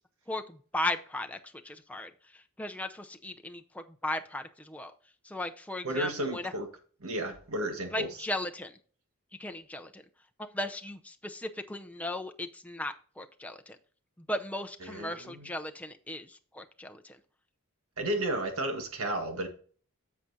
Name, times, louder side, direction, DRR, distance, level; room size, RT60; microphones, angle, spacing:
voice 1, 0.3-4.9 5.2-6.5 7.9-8.8 9.4-10.0 10.4-13.8 14.2-17.2, left 1 dB, 5° left, 0.6 m, -37 dB
voice 2, 5.8-6.7 7.0-8.3 14.8-15.6 18.0-19.5, right 1 dB, 70° right, 1.7 m, -33 dB
10.0 x 7.4 x 2.7 m
head